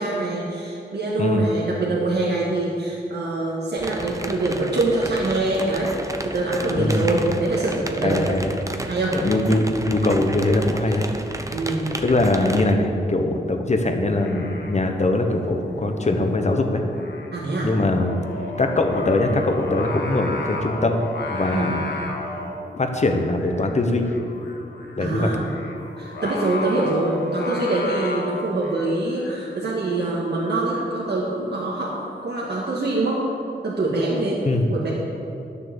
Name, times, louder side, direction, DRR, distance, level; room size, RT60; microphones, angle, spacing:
voice 1, 0.0-8.3 8.9-9.2 11.5-11.9 17.3-17.7 21.5-21.7 25.0-25.4 26.0-33.3 33.6-34.4 34.7-34.9, right 2 dB, 75° right, -5 dB, 1.8 m, -24 dB
sound 1, 3.8-12.7, right 1 dB, 20° right, 0.7 m, -32 dB
voice 2, 6.7-7.1 8.0-8.5 9.1-11.1 12.0-16.8 17.6-18.2 18.6-21.0 21.3-21.8 22.8-24.1 25.0-25.3 34.5-34.7, left 2 dB, 40° left, 5 dB, 1.1 m, -22 dB
Singing, 14.0-32.5, left 2 dB, 85° left, 1.5 m, -35 dB
11.5 x 6.9 x 7.0 m, 2.6 s
wide cardioid pair, 100°, 17 cm